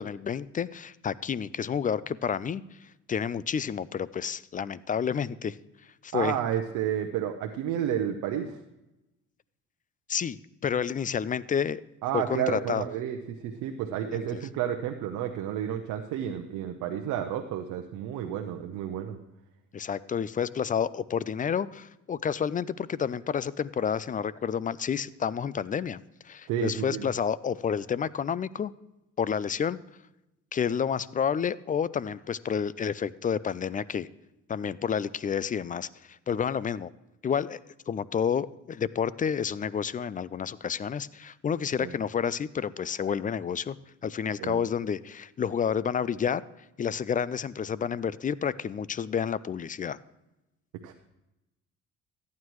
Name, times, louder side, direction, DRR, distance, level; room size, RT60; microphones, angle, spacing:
voice 1, 0.0-2.6 3.1-5.6 6.0-6.3 10.1-11.8 12.1-12.8 14.1-14.2 19.7-28.7 29.2-29.8 30.5-34.1 34.5-36.9 37.2-37.6 37.9-43.8 44.0-46.4 46.8-50.0, left 7 dB, 25° left, 19 dB, 0.4 m, -30 dB
voice 2, 6.1-8.6 12.0-19.2 26.5-27.1 41.8-41.9 44.4-44.6 50.8-50.9, right 10 dB, 80° right, 4 dB, 0.8 m, -31 dB
14.5 x 9.5 x 3.1 m, 0.96 s
supercardioid pair, 80°, 30 cm